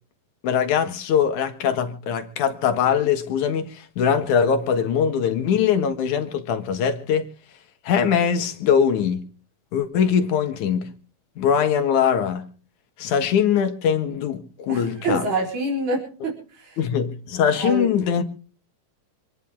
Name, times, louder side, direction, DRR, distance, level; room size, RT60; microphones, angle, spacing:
voice 1, 0.4-7.3 7.8-9.2 9.7-10.9 11.4-12.4 13.0-15.3 16.8-18.2, left 7 dB, 90° left, 3.0 m, -22 dB
voice 2, 14.7-16.8 17.6-17.9, right 2 dB, 40° right, 4.7 m, -26 dB
26.5 x 10.0 x 3.6 m
omnidirectional pair, 3.4 m